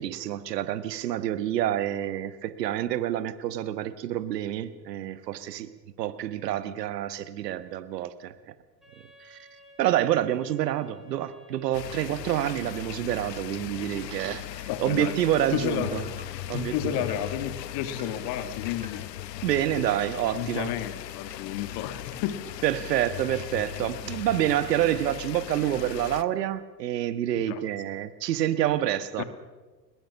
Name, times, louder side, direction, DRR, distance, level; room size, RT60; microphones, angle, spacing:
voice 1, 0.0-5.7 6.0-8.3 9.2-9.4 9.8-16.0 16.5-17.0 19.4-20.7 22.6-29.2, right 12 dB, 75° right, 13 dB, 1.4 m, -28 dB
Wind instrument woodwind instrument, 8.8-13.2, equal, ahead, 6.3 m, -55 dB
sound 1, 11.7-26.2, left 13 dB, 75° left, 1.0 m, -38 dB
sound 2, 14.2-14.3 15.2-15.4 16.2-16.3 17.1-17.2 18.0-18.1 18.8-18.9 19.7-19.8 20.5-20.6 21.3-21.4 22.1-22.2 22.9-23.0 23.7-23.8 24.4-24.5 24.8-25.9, right 4 dB, 15° right, 3.4 m, -49 dB
voice 2, 14.7-15.2 15.5-16.0 16.5-19.1 20.3-22.4 27.3-27.6 29.2-29.3, left 11 dB, 55° left, 10 dB, 2.1 m, -31 dB
21.5 x 21.0 x 7.0 m, 1.3 s
hypercardioid pair, 85°, 49 cm